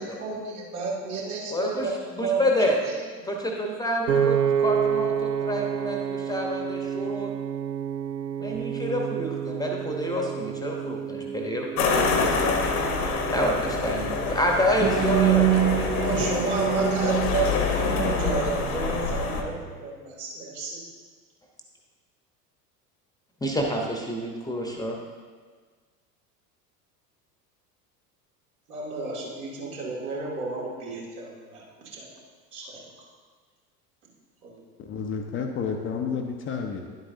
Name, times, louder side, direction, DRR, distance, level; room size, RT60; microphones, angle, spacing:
voice 1, 0.0-2.4 2.8-2.9 3.4-3.5 16.0-20.8 28.7-32.1 32.5-32.8 34.4-34.6, right 4 dB, 65° right, -5 dB, 2.5 m, -31 dB
voice 2, 1.5-2.8 3.2-7.3 8.4-12.6 13.3-16.2 23.4-25.0, equal, 10° left, 0 dB, 1.0 m, -28 dB
Piano, 4.1-16.3, right 8 dB, 80° right, 0.6 m, -30 dB
sound 1, 11.8-19.4, left 5 dB, 65° left, 1.2 m, -26 dB
sound 2, 14.8-19.7, right 12 dB, 25° right, 0.5 m, -26 dB
voice 3, 34.8-36.8, left 6 dB, 25° left, 3 dB, 0.6 m, -30 dB
10.5 x 7.9 x 2.7 m, 1.5 s
figure-of-eight pair, 75°, 47 cm